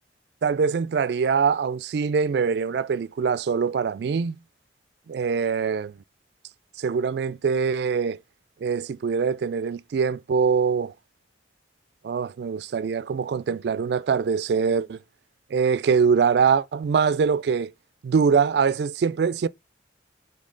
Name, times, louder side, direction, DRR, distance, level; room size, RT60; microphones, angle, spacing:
voice 1, 0.4-4.4 5.1-5.9 6.8-8.2 8.6-10.9 12.0-15.0 15.5-17.7 18.0-19.5, right 6 dB, 60° right, 0.3 m, -23 dB
7.3 x 4.0 x 3.8 m
head